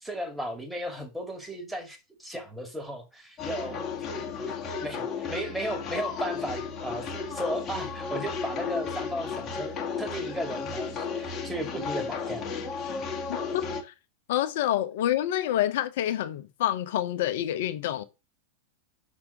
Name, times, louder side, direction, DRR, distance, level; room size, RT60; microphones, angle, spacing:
voice 1, 0.0-3.8 4.5-12.5, equal, 5° right, 2.2 m, -35 dB
sound 1, 3.4-13.8, left 5 dB, 30° left, 1.6 m, -34 dB
voice 2, 13.3-13.9 14.3-18.0, left 12 dB, 55° left, 0.9 m, -28 dB
6.3 x 6.0 x 6.0 m
figure-of-eight pair, 90°, 0 cm